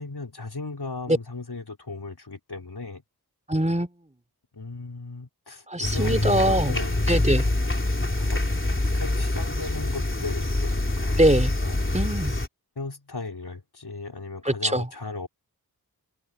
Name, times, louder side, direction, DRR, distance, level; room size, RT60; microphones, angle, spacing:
voice 1, 0.0-3.0 4.5-7.0 8.2-8.4 8.9-11.2 11.6-11.8 12.8-15.3, left 3 dB, 80° left, 4.5 m, -36 dB
voice 2, 3.5-3.9 5.7-6.8 7.1-7.4 11.2-11.5 11.9-12.3 14.4-14.9, right 1 dB, 20° right, 3.5 m, -22 dB
sound 1, 5.8-12.5, left 2 dB, 30° left, 3.5 m, -25 dB
wide cardioid pair, 55°, 38 cm